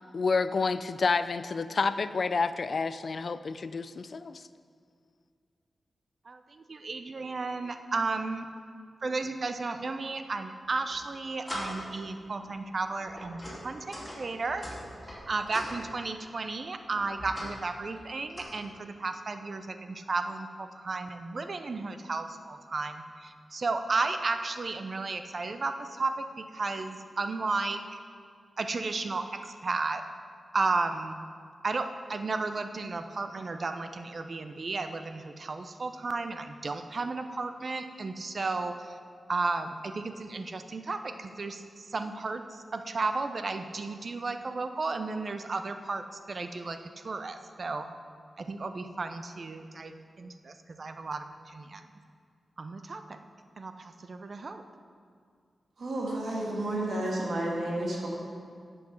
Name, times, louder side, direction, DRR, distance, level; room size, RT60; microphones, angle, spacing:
voice 1, 0.1-4.4, left 4 dB, 55° left, 13 dB, 0.4 m, -29 dB
voice 2, 6.3-8.5 9.0-14.7 15.3-28.0 28.6-30.0 30.5-31.2 31.6-39.0 39.3-46.8 47.0-47.9 48.4-51.9 52.6-53.2 53.6-54.6, right 3 dB, 50° right, 8 dB, 0.6 m, -33 dB
sound 1, 10.6-11.0 11.5-12.0 12.4-12.6 13.1-15.8 16.9-17.6 17.9-18.4, equal, 10° left, 2.4 m, -41 dB
voice 3, 55.8-58.1, right 1 dB, 70° right, -3 dB, 2.0 m, -31 dB
8.3 x 7.2 x 6.3 m, 2.2 s
wide cardioid pair, 100°, 0 cm